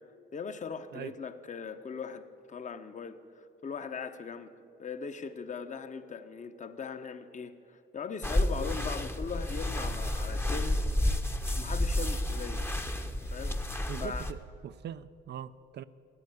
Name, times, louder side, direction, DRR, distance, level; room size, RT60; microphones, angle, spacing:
voice 1, 0.3-4.5 4.8-10.8 11.5-12.7 13.3-13.6 14.0-14.3, left 5 dB, 40° left, 1.0 m, -40 dB
sound 1, 8.2-14.3, left 1 dB, 10° left, 0.9 m, -31 dB
voice 2, 13.9-15.8, right 10 dB, 60° right, 0.5 m, -42 dB
15.0 x 9.6 x 9.5 m
cardioid pair, 90°, 20 cm